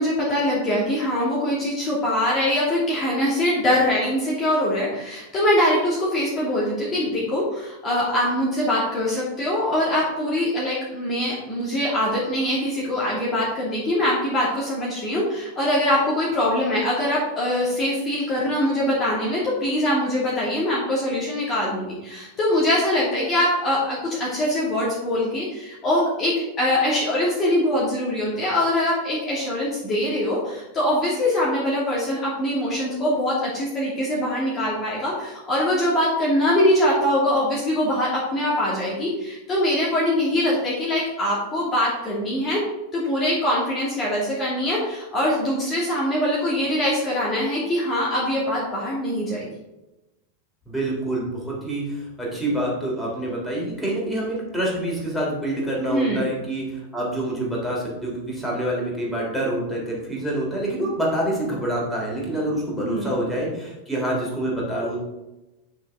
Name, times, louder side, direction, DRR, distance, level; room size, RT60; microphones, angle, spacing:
voice 1, 0.0-42.6 42.9-49.5 55.9-56.3 62.8-63.2, left 1 dB, 25° left, -6 dB, 2.5 m, -23 dB
voice 2, 50.6-65.0, right 1 dB, 5° left, -4 dB, 3.4 m, -26 dB
9.4 x 6.6 x 3.7 m, 0.99 s
figure-of-eight pair, 90°, 0 cm